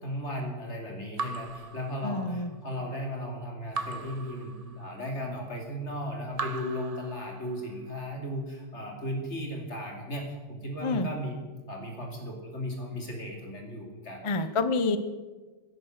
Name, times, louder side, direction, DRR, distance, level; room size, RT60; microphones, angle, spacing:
voice 1, 0.0-11.4 11.7-14.3, equal, 75° left, 2 dB, 3.0 m, -36 dB
Raindrop / Drip, 1.2-2.5 3.7-5.1 6.3-7.7, right 4 dB, 35° right, 0.8 m, -38 dB
voice 2, 2.0-2.5 10.8-11.1 14.2-15.0, left 3 dB, 30° left, 11 dB, 0.6 m, -27 dB
16.5 x 10.5 x 6.4 m, 1.3 s
omnidirectional pair, 1.2 m